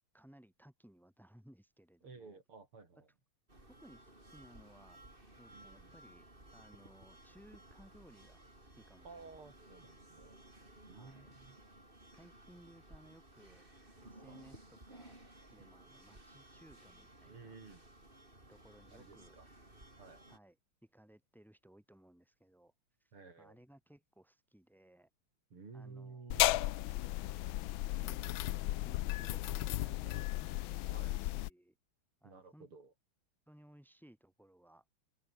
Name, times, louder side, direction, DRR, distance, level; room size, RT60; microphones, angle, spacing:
voice 1, 0.1-2.4 3.8-5.0 5.4-6.3 6.5-9.5 10.9-11.3 12.1-13.7 14.0-15.2 15.5-17.5 18.5-19.4 20.3-20.6 20.8-22.7 23.0-25.1 25.7-26.4 28.0-31.8 32.2-32.7 33.5-34.8, right 1 dB, ahead, 4.0 m, -61 dB
voice 2, 2.0-3.1 5.5-5.9 9.0-10.4 10.9-11.6 14.3-14.4 15.6-16.0 17.3-17.8 18.9-19.5 20.0-20.2 23.1-23.6 25.5-26.6 30.9-31.2 32.2-32.9, right 4 dB, 75° right, 5.1 m, -54 dB
sound 1, 3.5-20.4, right 1 dB, 25° right, 5.8 m, -58 dB
sound 2, 26.3-31.5, left 16 dB, 75° left, 1.4 m, -35 dB
open air
omnidirectional pair, 2.4 m